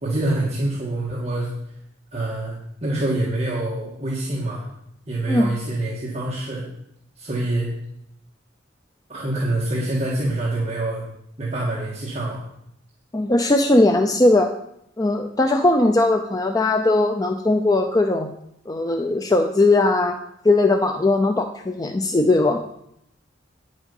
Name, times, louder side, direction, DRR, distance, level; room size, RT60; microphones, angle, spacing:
voice 1, 0.0-1.5 2.1-2.5 2.8-4.7 5.1-6.6 7.2-7.7 9.1-11.0 11.4-12.4, right 1 dB, 35° right, -5 dB, 1.7 m, -25 dB
voice 2, 13.1-14.5 15.0-18.3 18.7-20.2 20.4-22.8, left 2 dB, 20° left, 5 dB, 0.5 m, -19 dB
9.5 x 7.2 x 5.4 m, 0.77 s
head